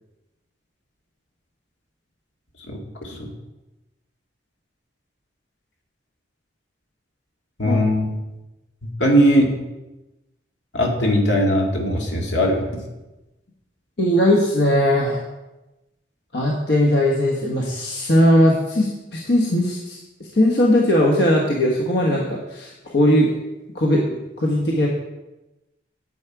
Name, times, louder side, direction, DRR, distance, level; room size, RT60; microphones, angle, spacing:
voice 1, 2.7-3.3 7.6-8.1 8.8-9.5 10.7-12.8, equal, 80° left, 0 dB, 2.0 m, -19 dB
voice 2, 14.0-15.2 16.3-23.3 23.7-24.9, left 1 dB, 65° left, -1 dB, 1.2 m, -19 dB
9.7 x 7.9 x 4.7 m, 1.0 s
head